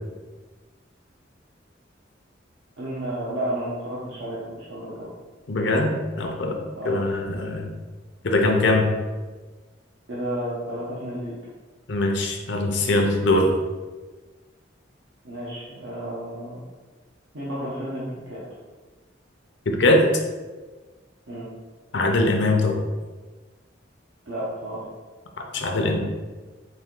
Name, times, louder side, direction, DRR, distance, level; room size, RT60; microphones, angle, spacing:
voice 1, 2.8-5.1 6.7-7.0 10.1-11.3 15.2-16.6 17.3-18.4 21.3-21.5 24.3-24.8 25.5-26.0, right 1 dB, 80° right, -8 dB, 0.9 m, -32 dB
voice 2, 5.5-6.6 6.9-7.7 8.2-8.9 11.9-13.5 19.8-20.0 21.9-22.8 25.5-26.0, left 2 dB, 65° left, 3 dB, 0.6 m, -21 dB
4.3 x 2.6 x 3.7 m, 1.3 s
head